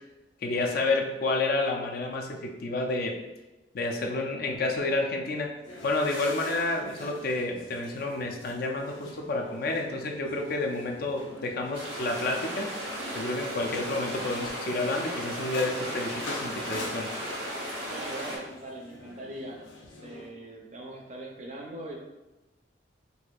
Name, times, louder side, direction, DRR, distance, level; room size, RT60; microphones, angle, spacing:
voice 1, 0.4-3.2 3.7-5.6 5.8-12.7 13.1-17.1, left 2 dB, 50° left, 2 dB, 0.4 m, -30 dB
sound 1, 5.6-20.3, left 1 dB, 85° left, 0.7 m, -44 dB
sound 2, 11.7-18.4, equal, 80° right, 1.1 m, -36 dB
voice 2, 17.9-19.7 20.0-21.9, right 1 dB, 40° right, 0 dB, 0.5 m, -41 dB
4.1 x 2.5 x 2.3 m, 1.1 s
head